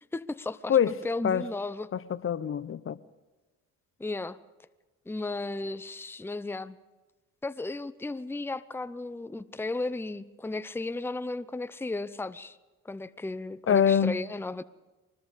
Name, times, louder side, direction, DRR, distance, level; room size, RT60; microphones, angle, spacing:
voice 1, 0.1-0.8 1.0-1.9 4.0-4.4 5.1-6.8 7.4-12.6 12.8-14.6, left 2 dB, 10° left, 0.7 m, -34 dB
voice 2, 1.9-3.0 13.7-14.2, left 8 dB, 45° left, 0.8 m, -24 dB
24.0 x 20.5 x 5.2 m
cardioid pair, 90°, 30 cm